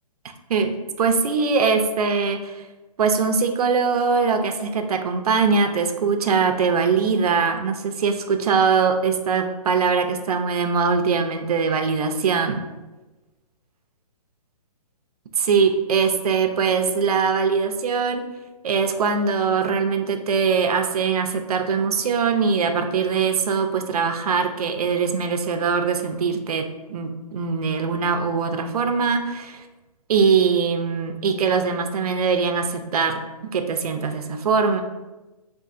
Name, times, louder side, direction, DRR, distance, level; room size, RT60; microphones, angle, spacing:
voice 1, 0.5-2.6 3.0-12.6 15.4-18.2 18.6-29.6 30.1-34.8, right 5 dB, 70° right, 6 dB, 0.4 m, -22 dB
3.6 x 2.4 x 2.4 m, 1.1 s
hypercardioid pair, 175°, 20 cm